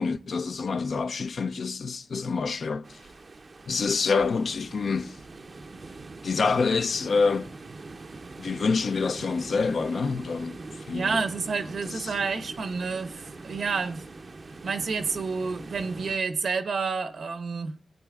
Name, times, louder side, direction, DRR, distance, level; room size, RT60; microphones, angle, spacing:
voice 1, 0.0-3.0 3.7-5.2 6.2-7.5 8.4-11.2 11.9-12.1, left 4 dB, 70° left, 0.5 m, -27 dB
sound 1, 2.8-16.2, right 3 dB, 50° right, 0.5 m, -43 dB
voice 2, 10.9-14.0 14.6-17.7, right 4 dB, 75° right, 0.9 m, -29 dB
20.5 x 8.7 x 2.4 m
cardioid pair, 55°, 0 cm